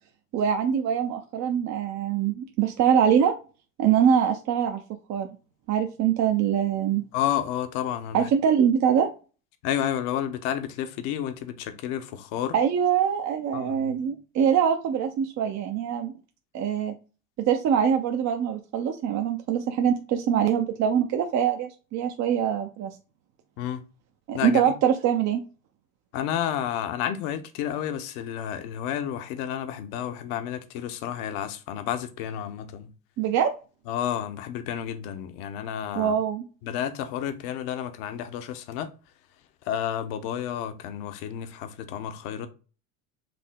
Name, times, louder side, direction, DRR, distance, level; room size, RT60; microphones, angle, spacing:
voice 1, 0.3-3.3 3.8-4.8 5.1-5.3 5.7-7.0 8.1-9.1 12.5-16.1 16.5-16.9 17.4-22.9 24.3-25.4 33.2-33.5 36.0-36.5, right 8 dB, 45° right, 0.7 m, -23 dB
voice 2, 7.1-8.3 9.6-12.6 13.5-13.9 23.6-23.8 24.3-24.7 26.1-32.9 33.9-36.1 36.6-38.9 39.6-42.5, left 10 dB, 60° left, 0.9 m, -31 dB
5.1 x 2.8 x 3.7 m
hypercardioid pair, 75°, 40 cm